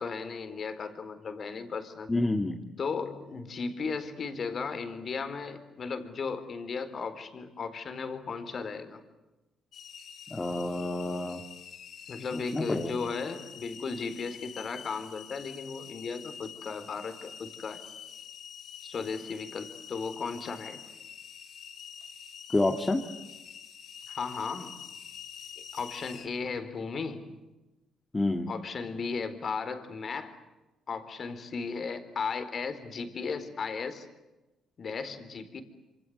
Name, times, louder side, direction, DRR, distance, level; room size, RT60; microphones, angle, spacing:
voice 1, 0.0-2.1 2.8-9.0 12.1-17.8 18.8-20.8 24.1-24.7 25.6-27.3 28.5-30.4 30.9-34.1 34.8-35.6, left 5 dB, 50° left, 9 dB, 4.1 m, -36 dB
voice 2, 2.1-2.6 10.3-11.4 12.5-12.9 22.5-23.0 28.1-28.5, left 2 dB, 20° left, 3 dB, 2.5 m, -28 dB
sound 1, 9.7-26.3, left 8 dB, 65° left, 2.6 m, -46 dB
27.0 x 26.5 x 8.0 m, 1.0 s
cardioid pair, 80°, 0 cm